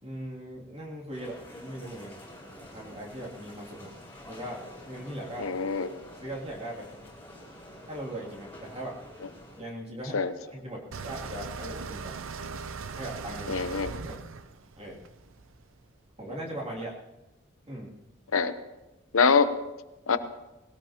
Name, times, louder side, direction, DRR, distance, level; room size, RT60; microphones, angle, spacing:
voice 1, 0.0-2.2 2.5-3.9 4.3-5.5 6.2-6.9 7.9-9.0 9.6-10.2 10.5-12.2 12.9-13.6 14.0-14.3 14.8-15.1 16.2-17.0 17.7-18.0, right 1 dB, 30° right, -3 dB, 2.7 m, -39 dB
sound 1, 1.1-9.6, left 1 dB, 10° left, 5.0 m, -48 dB
voice 2, 5.4-5.9 10.1-10.3 13.5-13.9 18.3-18.5 19.1-19.5 20.1-20.2, left 5 dB, 85° left, 10 dB, 0.9 m, -24 dB
sound 2, 10.9-15.9, right 4 dB, 75° right, 0.7 m, -39 dB
20.5 x 17.5 x 2.9 m, 1.0 s
head